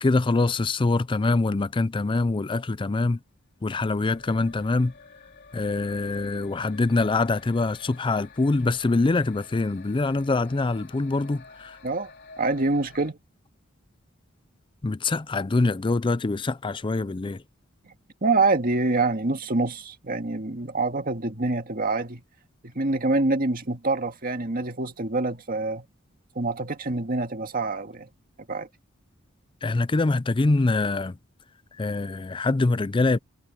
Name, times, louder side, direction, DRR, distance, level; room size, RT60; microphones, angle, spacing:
voice 1, 0.0-3.2 3.6-4.9 5.5-11.8 14.8-17.4 29.6-31.2 31.8-33.2, left 3 dB, 25° left, 0.4 m, -24 dB
sound 1, 3.6-13.1, left 4 dB, 55° left, 3.9 m, -50 dB
voice 2, 12.4-13.2 18.2-22.2 22.6-25.9 26.4-28.1 28.5-28.7, right 3 dB, 45° right, 2.0 m, -26 dB
head